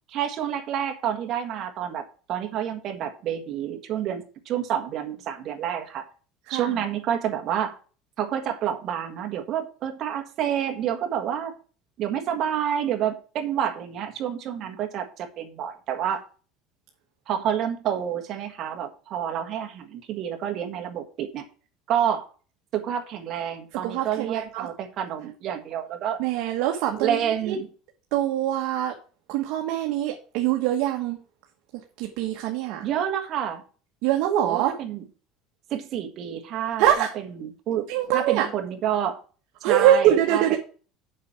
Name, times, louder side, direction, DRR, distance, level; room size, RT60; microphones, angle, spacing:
voice 1, 0.1-6.1 6.5-7.8 8.2-11.5 12.0-16.2 17.3-21.5 21.9-22.3 22.7-26.2 27.0-27.7 32.8-33.6 34.4-35.0 35.7-37.1 37.4-37.9 38.1-39.2 39.6-40.6, right 9 dB, 40° right, 5 dB, 1.6 m, -28 dB
voice 2, 23.8-24.7 26.2-27.2 27.5-27.6 28.1-28.9 29.3-31.2 32.0-32.9 34.0-34.7 36.8-37.1 37.9-38.5 39.6-40.6, right 11 dB, 60° right, 2 dB, 1.3 m, -23 dB
7.4 x 5.8 x 5.9 m, 0.38 s
cardioid pair, 165°, 0 cm